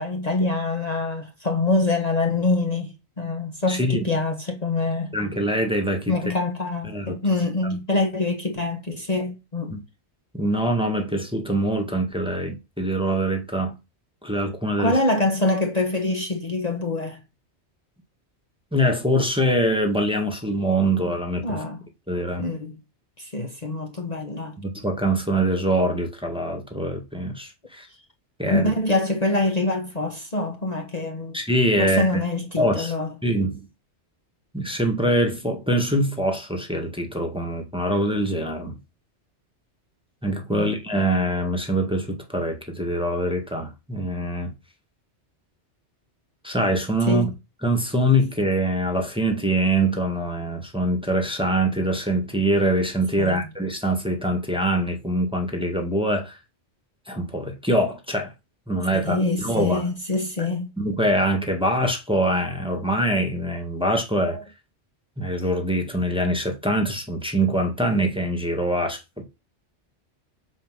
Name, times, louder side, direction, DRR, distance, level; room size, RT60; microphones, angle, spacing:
voice 1, 0.0-5.1 6.1-9.8 14.8-17.2 21.4-21.8 22.4-22.7 23.2-24.6 28.5-31.4 31.8-33.1 40.5-40.7 47.1-47.3 53.2-53.5 58.9-60.7 64.2-64.4, left 2 dB, 35° left, 1.4 m, -25 dB
voice 2, 3.7-4.2 5.1-6.1 6.9-7.2 9.7-9.8 10.3-13.8 14.2-15.0 18.7-21.6 22.1-22.5 24.6-27.9 28.4-28.7 31.3-32.1 32.6-32.9 33.2-33.7 34.5-38.8 40.2-44.5 46.4-47.3 47.6-56.4 57.1-58.3 58.7-59.8 60.8-64.4 65.2-69.2, right 1 dB, 5° right, 1.7 m, -24 dB
7.5 x 4.9 x 6.2 m
omnidirectional pair, 1.2 m